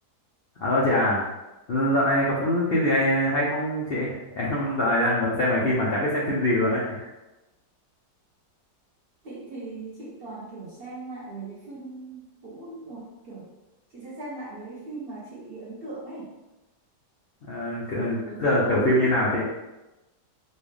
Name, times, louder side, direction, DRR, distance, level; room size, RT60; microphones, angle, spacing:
voice 1, 0.6-1.2 1.7-7.1 17.5-19.4, left 1 dB, 65° left, -5 dB, 0.5 m, -23 dB
voice 2, 9.2-13.5 13.9-16.3 18.2-19.2, right 2 dB, 45° right, -6 dB, 0.9 m, -38 dB
4.3 x 2.3 x 3.2 m, 1.0 s
omnidirectional pair, 1.8 m